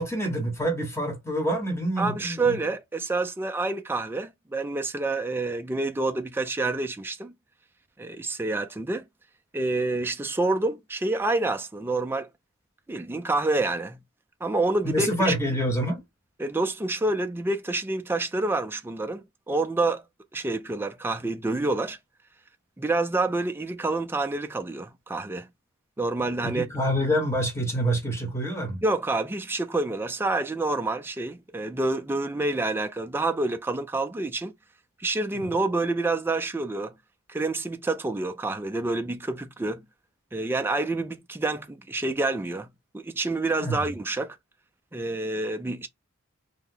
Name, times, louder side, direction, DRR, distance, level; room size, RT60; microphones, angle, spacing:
voice 1, 0.0-2.6 14.8-16.0 26.4-28.8 43.6-43.7, equal, 10° left, 1.0 m, -26 dB
voice 2, 2.0-7.3 8.0-9.0 9.5-12.3 12.9-14.0 14.4-15.3 16.4-20.0 20.3-22.0 22.8-25.5 26.0-26.7 28.8-34.5 35.0-36.9 37.3-39.8 40.3-42.7 42.9-44.4 44.9-45.9, right 2 dB, 10° right, 0.3 m, -28 dB
2.7 x 2.1 x 3.7 m
head